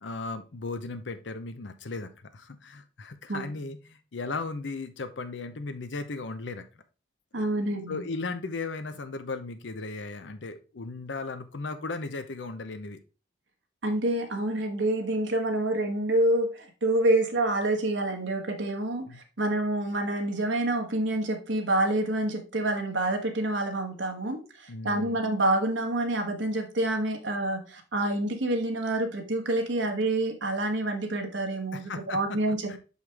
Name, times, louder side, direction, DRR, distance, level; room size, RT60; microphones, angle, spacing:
voice 1, 0.0-6.6 7.9-13.0 19.1-19.2 24.7-25.2 31.7-32.2 32.7-32.8, left 3 dB, 90° left, 9 dB, 0.7 m, -36 dB
voice 2, 7.3-8.0 13.8-32.8, right 1 dB, 90° right, 3 dB, 1.6 m, -27 dB
6.2 x 5.5 x 3.4 m, 0.33 s
head